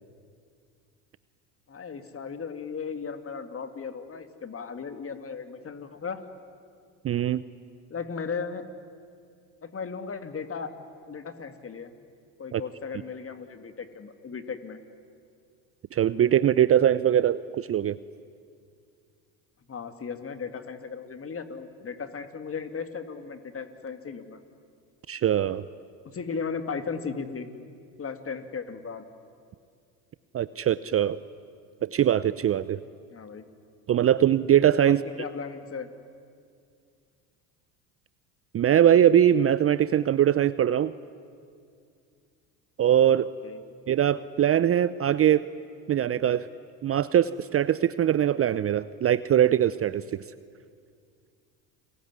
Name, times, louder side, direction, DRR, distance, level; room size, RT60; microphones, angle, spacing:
voice 1, 1.7-6.2 7.9-8.7 9.6-10.7 11.1-11.9 12.4-14.8 19.7-24.4 26.0-27.5 28.0-29.0 33.1-33.4 34.8-35.9 43.1-43.6, left 5 dB, 30° left, 9 dB, 2.5 m, -36 dB
voice 2, 7.0-7.4 12.5-12.6 15.9-18.0 25.1-25.6 30.3-31.2 31.8-32.8 33.9-35.0 38.5-40.9 42.8-43.3 43.9-45.4 45.9-46.5 46.8-50.0, right 10 dB, 30° right, 16 dB, 0.6 m, -22 dB
29.5 x 21.0 x 9.7 m, 2.3 s
hypercardioid pair, 80°, 45 cm